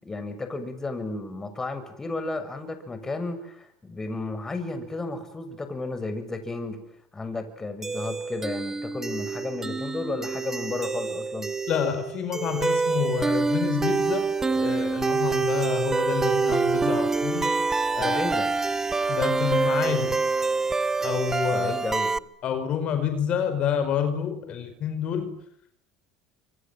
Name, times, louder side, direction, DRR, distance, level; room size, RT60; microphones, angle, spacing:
voice 1, 0.0-6.8 7.1-11.5 18.0-18.5 21.5-22.2, left 2 dB, 20° left, 9 dB, 6.9 m, -33 dB
sound 1, 7.8-22.2, right 4 dB, 20° right, 1.2 m, -26 dB
voice 2, 11.7-17.5 17.9-18.2 19.1-20.2 21.0-21.7 22.4-25.4, left 8 dB, 55° left, 8 dB, 4.7 m, -28 dB
28.5 x 26.5 x 7.9 m, 0.70 s
hypercardioid pair, 85°, 2 cm